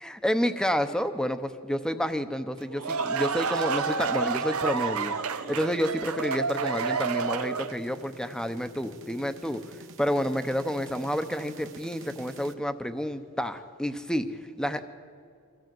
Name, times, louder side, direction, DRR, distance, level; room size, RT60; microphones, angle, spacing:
voice 1, 0.0-9.6 10.0-14.8, equal, 5° left, 9 dB, 0.8 m, -29 dB
sound 1, 2.6-7.9, right 5 dB, 80° right, 0.8 m, -29 dB
sound 2, 5.1-12.5, right 3 dB, 60° right, 1.3 m, -49 dB
24.0 x 14.5 x 7.7 m, 2.3 s
head